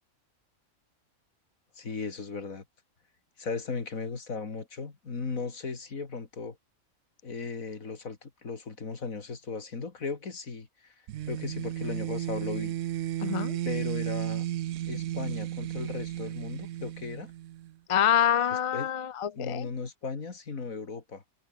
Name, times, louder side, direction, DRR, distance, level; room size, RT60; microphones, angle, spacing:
voice 1, 1.8-2.6 3.4-6.6 7.2-10.9 11.3-12.7 13.6-14.5 14.9-17.3 18.7-18.9 19.4-21.2, left 4 dB, 80° left, 2.9 m, -36 dB
sound 1, 11.1-17.7, right 13 dB, 70° right, 0.9 m, -34 dB
voice 2, 13.2-13.6 17.9-19.7, left 9 dB, 40° left, 0.4 m, -26 dB
omnidirectional pair, 1.4 m